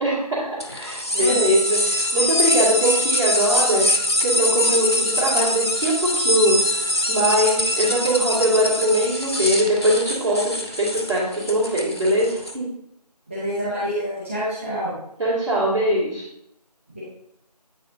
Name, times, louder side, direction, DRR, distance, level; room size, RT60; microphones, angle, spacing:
voice 1, 0.0-12.7 15.2-16.2, right 1 dB, 55° right, -10 dB, 2.4 m, -22 dB
sound 1, 0.6-12.5, left 1 dB, 40° left, 0.4 m, -23 dB
voice 2, 13.3-14.9 16.9-17.0, equal, 20° right, -12 dB, 1.8 m, -27 dB
8.7 x 4.2 x 2.7 m, 0.76 s
figure-of-eight pair, 170°, 21 cm